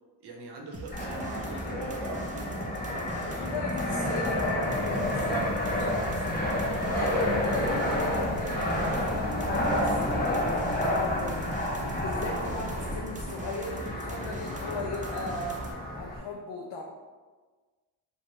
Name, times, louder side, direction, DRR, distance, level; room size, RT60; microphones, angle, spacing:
voice 1, 0.2-3.3, right 2 dB, 55° right, 1 dB, 0.7 m, -43 dB
sound 1, 0.7-15.7, right 2 dB, 20° right, 0.4 m, -41 dB
Fixed-wing aircraft airplane, 0.9-16.2, left 1 dB, 20° left, 0.8 m, -30 dB
voice 2, 3.1-15.6 15.9-16.8, left 2 dB, 70° left, -1 dB, 0.5 m, -37 dB
sound 2, 4.7-12.9, right 1 dB, 85° right, 0.8 m, -40 dB
2.5 x 2.2 x 3.1 m, 1.4 s
supercardioid pair, 60°, 48 cm